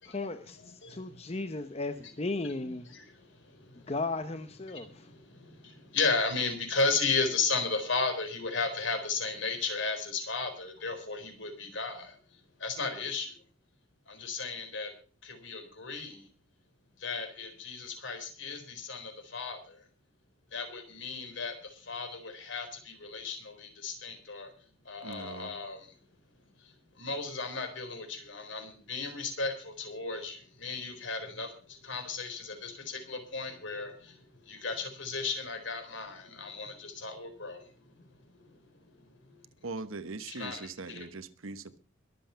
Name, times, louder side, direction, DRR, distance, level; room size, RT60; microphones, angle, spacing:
voice 1, 0.0-2.9 3.9-5.1, left 2 dB, 30° left, 0.8 m, -35 dB
voice 2, 0.6-1.3 2.9-3.9 4.7-13.4 14.1-14.9 15.2-16.3 17.0-19.8 20.5-24.5 24.8-25.9 26.6-38.1 38.4-39.4 40.3-41.1, left 4 dB, 65° left, 4.2 m, -35 dB
voice 3, 25.0-25.5 39.6-41.8, right 3 dB, 90° right, 1.1 m, -41 dB
22.0 x 7.9 x 5.7 m
head